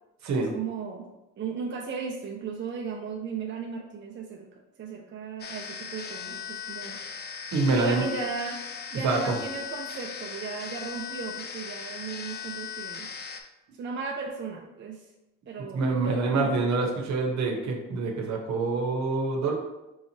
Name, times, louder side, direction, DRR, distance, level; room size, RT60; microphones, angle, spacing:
voice 1, 0.4-4.5 4.8-7.0 7.7-8.6 8.9-13.1 13.8-15.0 15.5-16.6, right 5 dB, 40° right, 1 dB, 0.5 m, -36 dB
sound 1, 5.4-13.4, left 6 dB, 35° left, 0.4 m, -38 dB
voice 2, 7.5-8.1 9.0-9.4 15.7-19.5, right 3 dB, 65° right, 1 dB, 0.9 m, -26 dB
4.6 x 2.9 x 2.8 m, 0.99 s
cardioid pair, 90°, 30 cm